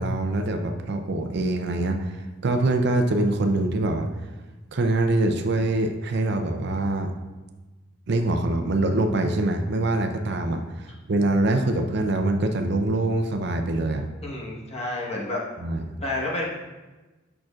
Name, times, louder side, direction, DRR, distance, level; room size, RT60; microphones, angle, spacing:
voice 1, 0.0-2.1 2.4-4.1 4.7-7.1 8.1-10.6 11.1-14.1 15.6-15.8, right 2 dB, 60° right, 5 dB, 0.6 m, -24 dB
voice 2, 14.2-15.4 16.0-16.4, left 2 dB, 35° left, -4 dB, 1.3 m, -29 dB
8.9 x 5.9 x 2.4 m, 1.2 s
head